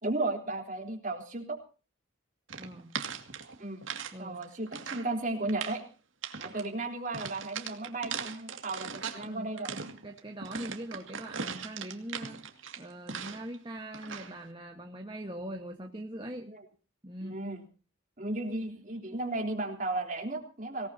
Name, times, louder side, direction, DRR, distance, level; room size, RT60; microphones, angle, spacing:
voice 1, 0.0-1.6 3.6-3.8 4.2-5.8 6.4-9.7 16.5-16.6 17.2-17.6 18.2-20.9, right 2 dB, 40° right, 3 dB, 3.8 m, -34 dB
voice 2, 2.5-2.9 4.1-4.5 9.2-16.5 17.0-17.4, right 1 dB, 25° right, 3 dB, 1.4 m, -42 dB
sound 1, 2.5-4.1 4.4-5.1 5.4-5.8 6.2-6.7 7.1-9.3 9.6-13.6 13.9-14.4, right 6 dB, 70° right, 2.3 m, -39 dB
24.5 x 18.5 x 2.8 m, 0.36 s
head